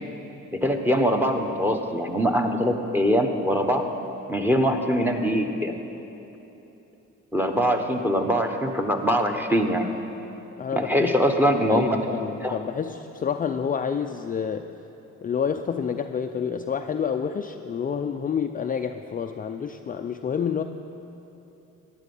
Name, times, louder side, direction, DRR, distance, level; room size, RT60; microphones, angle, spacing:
voice 1, 0.5-3.9 4.3-5.7 7.3-10.0 10.8-11.9 12.4-12.5, equal, 5° right, 5 dB, 1.1 m, -23 dB
voice 2, 10.6-11.1 11.7-14.7 15.2-20.6, left 7 dB, 30° left, 6 dB, 0.4 m, -28 dB
14.5 x 10.5 x 5.5 m, 3.0 s
cardioid pair, 90°, 30 cm